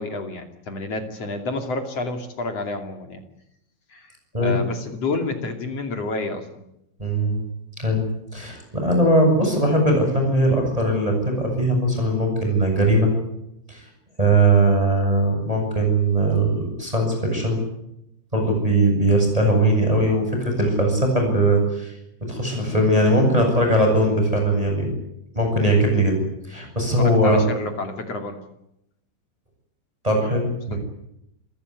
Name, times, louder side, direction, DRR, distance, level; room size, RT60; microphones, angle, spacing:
voice 1, 0.0-3.2 3.9-6.5 27.0-28.4 30.7-30.8, left 3 dB, 40° left, 5 dB, 2.9 m, -29 dB
voice 2, 7.0-7.4 7.8-8.0 8.3-13.1 13.7-13.8 14.2-17.6 18.3-21.9 22.3-24.9 25.3-26.2 26.5-27.4 30.0-30.8, right 1 dB, 5° right, 2 dB, 7.6 m, -20 dB
29.0 x 17.0 x 9.7 m, 0.82 s
omnidirectional pair, 5.6 m